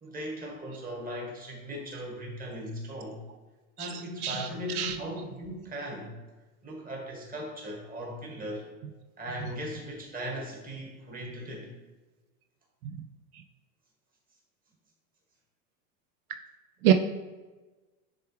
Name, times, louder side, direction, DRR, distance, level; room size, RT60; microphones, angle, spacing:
voice 1, 0.0-3.2 3.8-6.2 6.6-8.7 9.2-11.7, equal, 20° right, -1 dB, 1.6 m, -38 dB
voice 2, 3.8-3.9 4.2-4.4 4.8-4.9 16.8-16.9, right 11 dB, 75° right, 6 dB, 0.6 m, -23 dB
10.0 x 3.4 x 3.3 m, 1.2 s
supercardioid pair, 125°, 44 cm